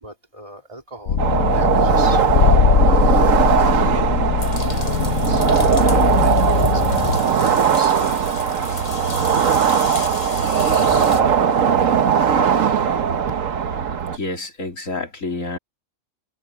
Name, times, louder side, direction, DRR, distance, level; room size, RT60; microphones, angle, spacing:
voice 1, 0.0-1.2 1.5-4.0 4.5-7.9 10.7-11.4, right 2 dB, 25° right, 2.9 m, -38 dB
sound 1, 1.1-7.2, left 7 dB, 65° left, 1.2 m, -20 dB
sound 2, 1.2-14.2, right 7 dB, 85° right, 1.5 m, -19 dB
sound 3, 4.4-11.2, left 4 dB, 30° left, 1.1 m, -35 dB
voice 2, 14.1-15.6, left 2 dB, 90° left, 4.1 m, -29 dB
omnidirectional pair, 1.3 m